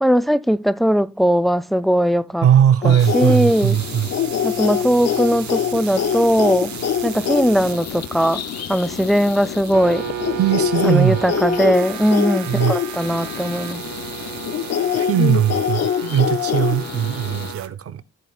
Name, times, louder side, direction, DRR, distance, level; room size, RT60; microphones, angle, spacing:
voice 1, 0.0-2.5 2.8-3.8 4.4-6.7 7.0-8.4 8.7-10.1 10.8-13.8, equal, ahead, 0.4 m, -19 dB
voice 2, 2.4-4.1 10.4-11.2 12.5-12.8 14.9-18.0, right 9 dB, 50° right, 0.8 m, -19 dB
sound 1, 2.8-17.5, left 9 dB, 60° left, 0.7 m, -25 dB
Lightbulb Sounds, 3.0-17.7, right 11 dB, 75° right, 1.1 m, -34 dB
14.0 x 7.8 x 2.4 m
cardioid pair, 115°, 29 cm